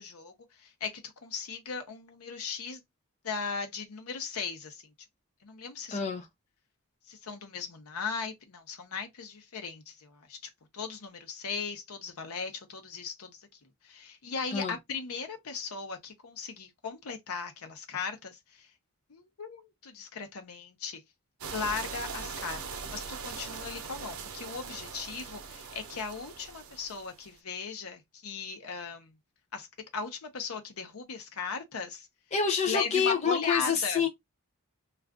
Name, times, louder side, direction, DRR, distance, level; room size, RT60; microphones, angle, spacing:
voice 1, 0.0-2.8 3.2-4.8 5.4-6.0 7.1-10.4 10.7-13.4 13.8-18.7 19.1-21.0 21.5-29.1 29.5-29.7 29.9-32.1 32.7-34.0, left 5 dB, 85° left, 0.7 m, -37 dB
voice 2, 5.9-6.3 14.5-14.8 32.3-34.1, left 6 dB, 30° left, 0.4 m, -27 dB
sound 1, 21.4-27.3, right 5 dB, 85° right, 0.7 m, -41 dB
2.4 x 2.4 x 3.4 m
head